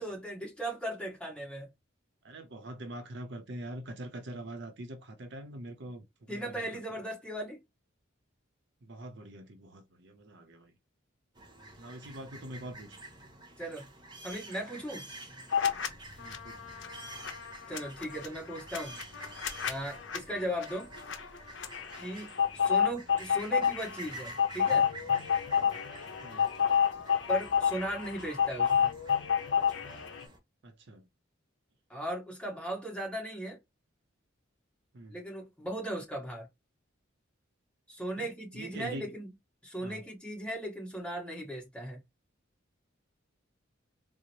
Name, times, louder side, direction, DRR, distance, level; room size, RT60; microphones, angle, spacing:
voice 1, 0.0-1.7 6.3-7.6 13.6-13.9 14.2-15.1 17.7-19.0 19.7-20.9 22.0-24.9 27.3-28.9 31.9-33.6 35.1-36.5 37.9-39.3 39.6-42.0, right 1 dB, 5° left, 1.4 m, -37 dB
voice 2, 2.2-6.8 8.8-10.7 11.8-12.9 16.2-16.5 25.6-25.7 26.2-26.4 30.6-31.0 34.9-35.2 38.2-38.3 38.5-39.1 39.8-40.0, right 1 dB, 60° right, 0.7 m, -44 dB
sound 1, 11.4-30.4, right 2 dB, 25° right, 0.8 m, -49 dB
sound 2, 15.5-15.9 16.2-30.2, left 7 dB, 65° left, 0.6 m, -30 dB
3.9 x 2.0 x 3.0 m
head